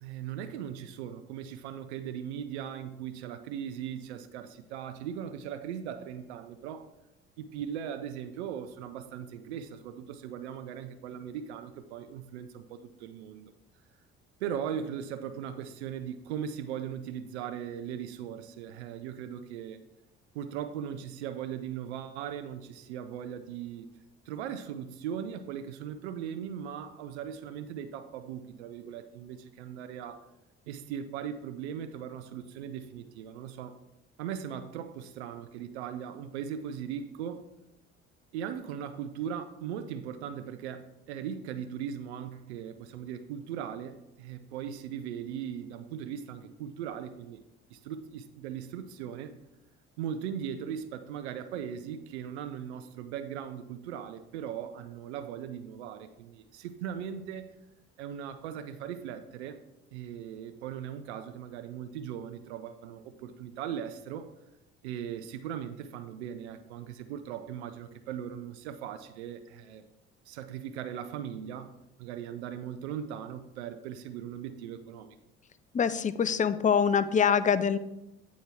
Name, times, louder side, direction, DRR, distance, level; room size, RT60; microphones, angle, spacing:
voice 1, 0.0-6.9 7.4-13.5 14.4-19.8 20.3-23.9 24.3-30.3 30.7-33.8 34.2-37.5 38.3-47.4 47.7-49.3 50.0-57.5 58.0-59.6 59.9-64.3 64.8-69.8 70.3-71.7 72.0-75.2, right 9 dB, 85° right, 10 dB, 0.5 m, -39 dB
voice 2, 75.7-77.8, left 7 dB, 25° left, 13 dB, 0.5 m, -24 dB
8.3 x 4.4 x 4.7 m, 0.89 s
hypercardioid pair, 60°, 32 cm